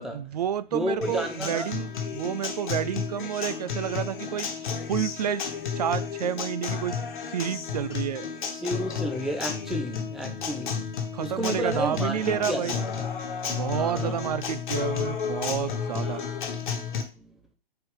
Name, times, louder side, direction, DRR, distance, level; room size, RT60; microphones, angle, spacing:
voice 1, 0.1-7.0 7.3-8.3 11.1-12.8 13.5-16.2, right 9 dB, 45° right, 0.4 m, -30 dB
voice 2, 0.7-1.7 8.5-10.9 11.2-13.0 13.7-14.2 16.0-16.6 17.2-17.3, equal, ahead, 0.8 m, -32 dB
Acoustic guitar, 1.0-17.0, left 6 dB, 55° left, 1.5 m, -32 dB
7.5 x 4.5 x 3.7 m
figure-of-eight pair, 130°, 29 cm